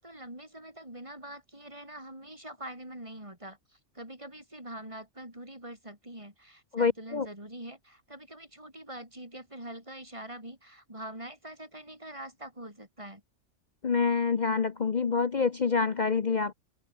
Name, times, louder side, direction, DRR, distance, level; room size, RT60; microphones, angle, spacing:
voice 1, 0.0-13.2, right 1 dB, 25° right, 6.7 m, -44 dB
voice 2, 6.7-7.3 13.8-16.5, left 5 dB, 40° left, 0.9 m, -27 dB
omnidirectional pair, 1.3 m